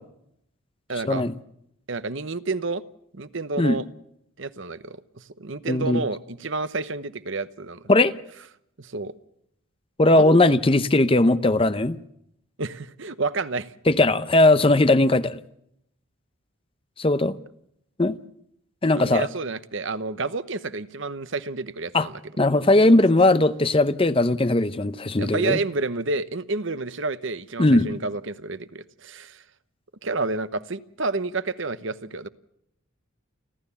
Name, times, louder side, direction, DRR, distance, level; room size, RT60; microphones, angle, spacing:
voice 1, 0.9-1.2 1.9-2.8 3.1-3.8 4.4-7.8 8.8-9.1 10.1-10.6 12.6-13.7 19.0-22.1 25.2-29.4 30.0-32.3, right 3 dB, 60° right, 1.0 m, -30 dB
voice 2, 5.7-6.0 7.9-8.1 10.0-12.0 13.9-15.4 17.0-17.3 18.0-18.2 18.8-19.3 21.9-22.1 22.4-25.6 27.6-27.9, left 2 dB, 25° left, 0.7 m, -19 dB
30.0 x 12.5 x 7.0 m
head